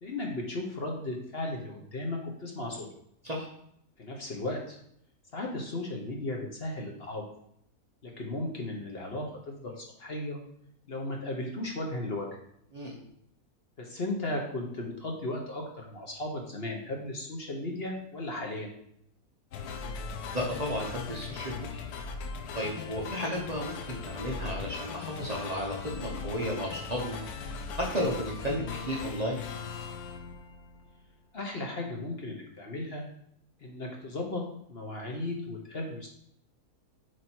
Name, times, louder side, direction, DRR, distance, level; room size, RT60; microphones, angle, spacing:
voice 1, 0.0-2.9 4.0-4.8 5.3-7.2 8.0-10.4 10.9-12.4 13.8-18.7 31.3-33.0 33.6-34.4 34.7-36.1, left 2 dB, 45° left, 0 dB, 1.1 m, -35 dB
voice 2, 12.7-13.1 20.3-21.8 22.5-27.2 27.7-29.4, equal, 30° right, -3 dB, 0.9 m, -33 dB
sound 1, 19.5-31.1, left 5 dB, 85° left, 1.2 m, -39 dB
7.5 x 3.0 x 4.5 m, 0.71 s
omnidirectional pair, 1.6 m